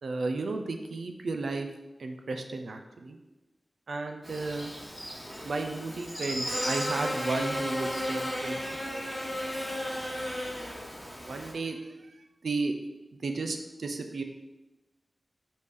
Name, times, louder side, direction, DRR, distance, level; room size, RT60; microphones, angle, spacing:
voice 1, 0.0-1.7 2.0-3.2 3.9-4.7 5.4-9.4 9.7-10.0 11.0-12.1 12.4-12.7 13.2-14.2, right 3 dB, 90° right, 5 dB, 0.4 m, -34 dB
Buzz, 4.2-11.5, equal, ahead, 1.3 m, -34 dB
4.2 x 3.5 x 3.2 m, 1.0 s
wide cardioid pair, 90°, 0 cm